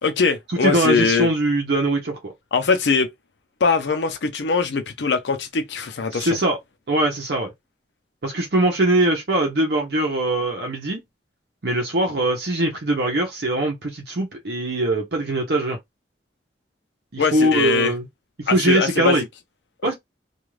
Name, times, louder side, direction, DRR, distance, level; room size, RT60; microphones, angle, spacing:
voice 1, 0.0-1.3 2.5-3.1 3.6-6.4 17.2-17.9 18.5-19.2, left 5 dB, 85° left, 0.6 m, -21 dB
voice 2, 0.6-2.3 6.1-6.6 6.9-7.5 8.2-11.0 11.6-15.8 17.1-18.0 18.4-19.2 19.8-19.9, right 1 dB, 65° right, 0.7 m, -21 dB
2.4 x 2.4 x 3.1 m
head